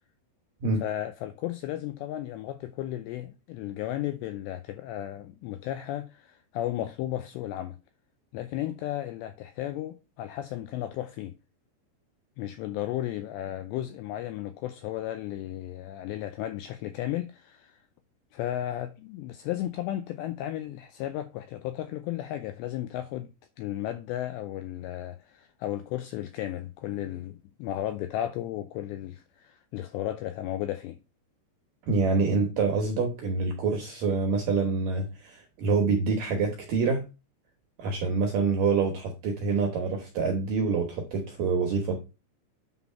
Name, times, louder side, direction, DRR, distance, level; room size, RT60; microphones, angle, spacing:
voice 1, 0.8-7.8 8.3-11.3 12.4-17.8 18.3-23.3 23.6-31.0, left 13 dB, 85° left, 2.5 m, -34 dB
voice 2, 31.9-37.0 37.8-42.0, right 4 dB, 70° right, 2.1 m, -26 dB
9.4 x 4.0 x 5.6 m
omnidirectional pair, 5.6 m